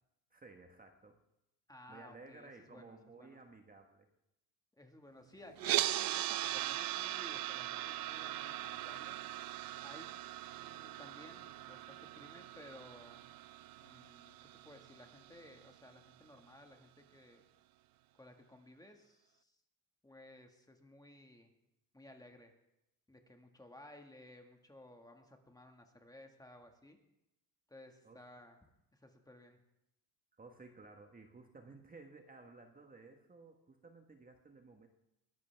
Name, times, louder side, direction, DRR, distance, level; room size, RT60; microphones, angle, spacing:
voice 1, 0.3-1.2 1.9-4.1 28.0-28.2 30.4-34.9, right 3 dB, 20° right, 4 dB, 1.4 m, -56 dB
voice 2, 1.7-3.4 4.8-9.2 9.8-10.2 10.5-13.3 13.8-14.4 14.6-17.4 18.1-19.6 20.0-21.5 21.9-22.5 23.1-27.0 27.7-28.6 28.9-29.6, left 1 dB, 10° left, 4 dB, 1.7 m, -57 dB
sound 1, 5.6-15.7, right 15 dB, 55° right, 0.6 m, -40 dB
21.5 x 12.0 x 3.5 m, 0.85 s
cardioid pair, 120°, 41 cm